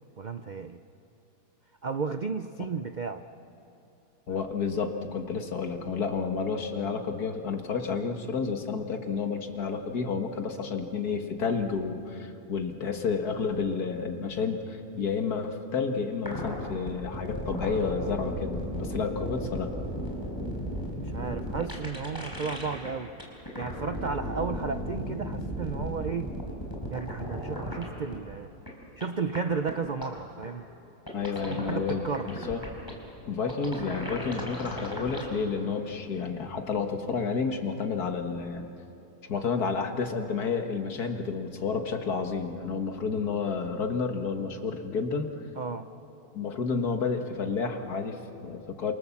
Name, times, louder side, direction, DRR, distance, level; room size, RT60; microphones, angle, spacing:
voice 1, 0.2-0.8 1.8-3.2 4.3-4.4 20.9-23.1 23.6-26.3 26.9-28.5 29.0-30.7 31.5-32.3 45.6-45.9, right 5 dB, 80° right, 9 dB, 0.4 m, -33 dB
voice 2, 4.3-19.8 31.1-32.6 33.3-38.6 39.3-45.3 46.3-48.9, left 5 dB, 65° left, 5 dB, 2.1 m, -30 dB
sound 1, 16.2-22.9 23.2-27.9 28.1-28.2 28.7-28.8 29.0-29.1 29.3-29.4 29.7-29.8 30.0-30.1 30.4-30.5 31.1-32.9 33.5-35.2, equal, 10° left, 4.6 m, -35 dB
28.0 x 27.5 x 7.2 m, 2.8 s
omnidirectional pair, 1.8 m